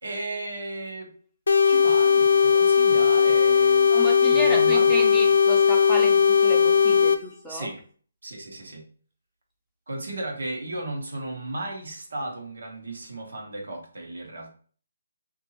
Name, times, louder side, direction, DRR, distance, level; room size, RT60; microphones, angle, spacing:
voice 1, 0.0-1.1 1.6-3.9 4.3-5.3 7.5-7.8 8.2-8.8 9.9-14.5, right 2 dB, 75° right, 0 dB, 1.0 m, -35 dB
sound 1, 1.5-7.2, left 7 dB, 80° left, 0.4 m, -18 dB
voice 2, 3.9-7.7, left 1 dB, ahead, -4 dB, 0.5 m, -32 dB
2.8 x 2.5 x 2.9 m, 0.43 s
hypercardioid pair, 165°, 0 cm